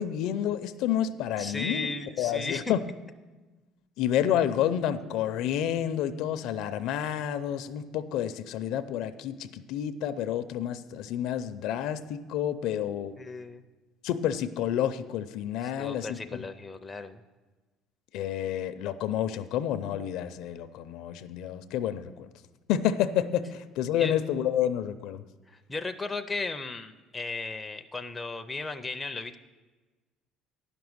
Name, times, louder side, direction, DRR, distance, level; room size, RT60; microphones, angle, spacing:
voice 1, 0.0-1.9 2.2-2.8 4.0-13.2 14.0-16.2 18.1-22.3 22.7-25.2, left 10 dB, 65° left, 11 dB, 0.5 m, -29 dB
voice 2, 1.4-2.8 13.2-13.6 15.6-17.2 24.0-24.2 25.5-29.4, left 3 dB, 10° left, 6 dB, 0.4 m, -35 dB
11.0 x 6.0 x 7.9 m, 1.2 s
cardioid pair, 160°, 0 cm